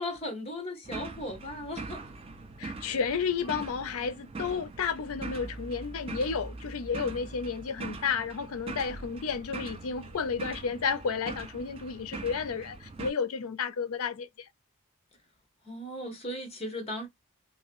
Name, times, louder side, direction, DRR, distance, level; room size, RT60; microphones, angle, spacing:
voice 1, 0.0-2.1 15.6-17.1, left 1 dB, 25° left, 1.0 m, -37 dB
sound 1, 0.8-13.1, right 3 dB, 25° right, 0.3 m, -42 dB
voice 2, 2.6-14.5, left 5 dB, 75° left, 0.5 m, -32 dB
2.8 x 2.5 x 2.9 m
head